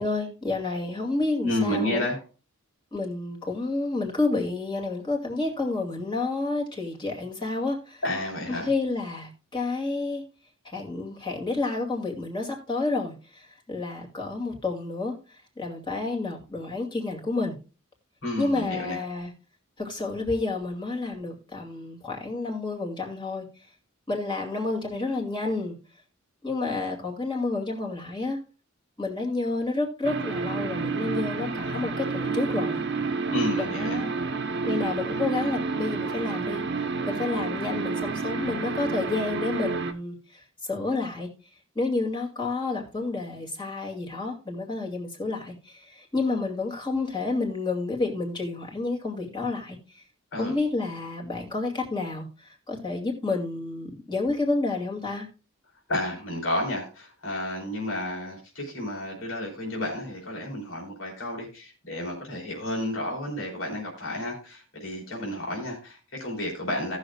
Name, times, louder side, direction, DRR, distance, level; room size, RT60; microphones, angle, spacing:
voice 1, 0.0-2.1 2.9-8.0 8.6-10.2 10.7-15.1 15.6-17.5 18.4-19.3 19.8-23.5 24.1-25.7 26.4-28.4 29.0-32.8 33.6-34.1 34.6-36.6 37.0-40.4 40.7-41.3 41.8-49.8 50.4-55.3, left 3 dB, 25° left, 0 dB, 2.3 m, -30 dB
voice 2, 1.4-2.2 8.0-8.7 18.2-19.0 33.3-34.0 50.3-50.6 55.9-67.0, left 1 dB, 70° left, -1 dB, 3.7 m, -31 dB
sound 1, 30.0-39.9, right 4 dB, 55° right, 0.9 m, -29 dB
18.0 x 6.4 x 2.3 m, 0.34 s
head